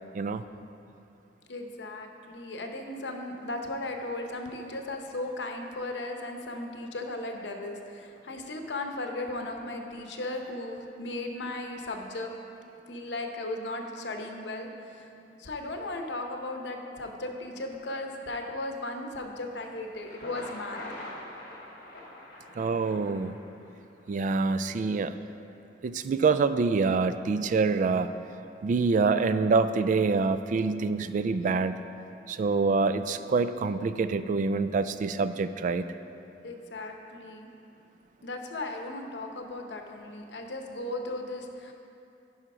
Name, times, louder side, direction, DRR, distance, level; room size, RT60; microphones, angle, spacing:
voice 1, 1.5-12.3 12.9-15.1 15.4-20.8 36.4-37.5 38.2-41.7, left 2 dB, 80° left, 4 dB, 0.8 m, -36 dB
Thunder, 19.9-23.9, left 1 dB, 60° left, 1.6 m, -43 dB
voice 2, 22.6-23.4 24.1-25.2 25.8-28.1 28.6-31.7 32.3-35.9, right 4 dB, 45° right, 12 dB, 0.3 m, -26 dB
10.5 x 5.6 x 4.9 m, 2.7 s
head